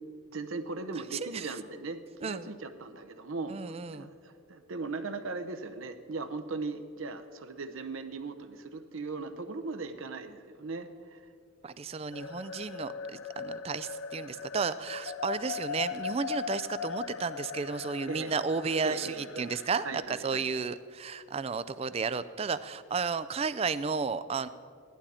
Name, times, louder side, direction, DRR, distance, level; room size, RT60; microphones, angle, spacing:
voice 1, 0.3-11.2 13.1-13.2 18.1-18.3 18.8-19.5 19.8-20.5, right 3 dB, 65° right, 8 dB, 0.8 m, -39 dB
voice 2, 1.1-1.6 2.2-2.5 3.5-4.1 11.6-24.5, right 5 dB, 25° right, 14 dB, 0.3 m, -33 dB
sound 1, 12.1-20.0, left 7 dB, 75° left, 0.5 m, -39 dB
16.5 x 11.5 x 4.3 m, 2.3 s
head